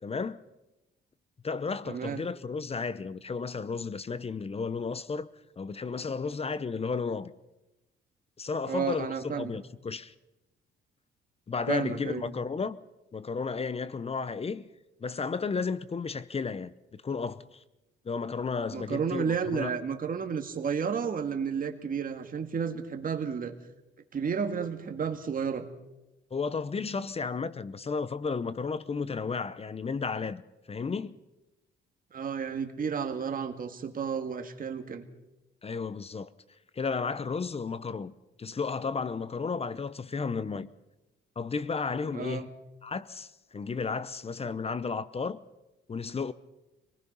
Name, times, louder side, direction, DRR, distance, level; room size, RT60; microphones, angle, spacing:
voice 1, 0.0-0.4 1.4-5.3 5.6-7.3 8.4-10.1 11.5-12.8 13.1-14.7 15.0-17.6 18.0-19.7 26.3-30.4 30.7-31.1 35.6-36.3 36.7-38.1 38.4-40.7 41.4-42.5 42.8-45.4 45.9-46.3, left 5 dB, 30° left, 0.8 m, -33 dB
voice 2, 1.8-2.3 8.7-9.6 11.7-12.3 18.7-23.5 24.1-25.7 32.1-35.1 42.1-42.5, right 6 dB, 45° right, 2.1 m, -32 dB
25.5 x 19.0 x 5.6 m
cardioid pair, 90°, 20 cm